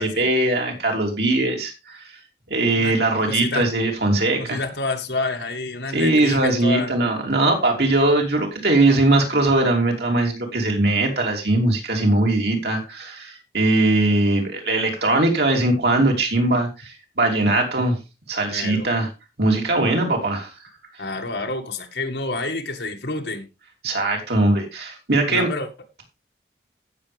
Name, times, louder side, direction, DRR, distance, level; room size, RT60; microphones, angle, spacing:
voice 1, 0.0-2.0 2.5-4.6 5.9-18.0 18.3-19.1 19.4-20.5 23.8-25.5, right 2 dB, 70° right, 1 dB, 3.3 m, -20 dB
voice 2, 3.3-3.6 4.4-6.9 18.5-18.9 21.0-23.5 25.3-25.7, left 3 dB, 75° left, 5 dB, 1.9 m, -28 dB
16.0 x 6.8 x 3.5 m, 0.26 s
head